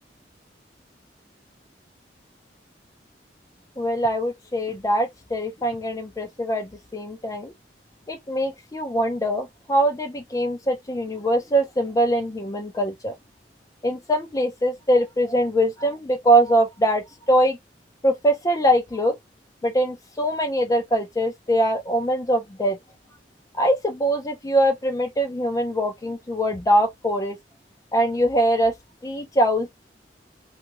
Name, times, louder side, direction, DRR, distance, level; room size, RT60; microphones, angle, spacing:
voice 1, 3.8-7.5 8.1-13.1 13.8-17.6 18.0-19.1 19.6-22.8 23.6-27.4 27.9-28.7 29.0-29.7, right 1 dB, 20° left, 0.5 m, -22 dB
2.7 x 2.3 x 2.9 m
head